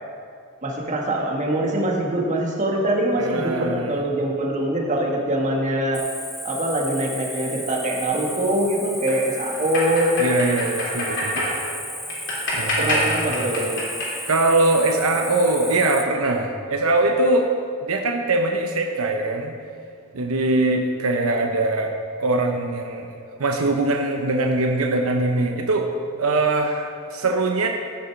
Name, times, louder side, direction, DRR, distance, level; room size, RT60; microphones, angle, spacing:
voice 1, 0.6-6.0 6.4-10.3 12.8-13.8, right 1 dB, 35° right, -2 dB, 1.6 m, -23 dB
voice 2, 3.2-4.0 10.2-11.5 12.5-13.1 13.4-13.5 14.3-17.5 17.8-19.6 20.1-21.9 22.2-25.9 26.2-27.7, right 2 dB, 85° right, 3 dB, 0.8 m, -22 dB
Cricket, 5.9-16.0, equal, ahead, 0.8 m, -34 dB
sound 1, 9.0-15.7, left 1 dB, 55° left, 3.1 m, -28 dB
15.0 x 6.7 x 4.6 m, 2.3 s
head